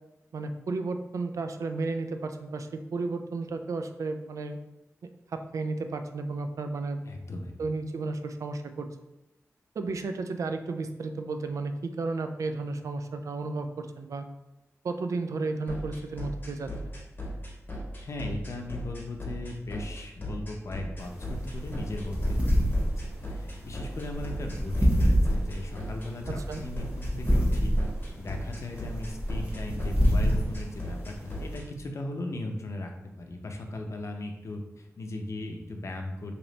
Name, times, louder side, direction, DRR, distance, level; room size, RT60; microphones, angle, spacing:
voice 1, 0.3-4.6 5.0-7.0 7.6-8.9 9.8-14.2 14.8-16.9 26.3-26.6, right 3 dB, 85° right, 7 dB, 0.3 m, -33 dB
voice 2, 7.0-7.6 18.0-27.8 28.2-32.9 33.2-36.3, left 2 dB, 65° left, 3 dB, 0.6 m, -38 dB
sound 1, 15.7-31.6, equal, 40° left, 1.1 m, -37 dB
sound 2, 21.0-31.5, equal, 20° right, 1.2 m, -27 dB
3.2 x 2.9 x 3.9 m, 0.93 s
wide cardioid pair, 75°, 5 cm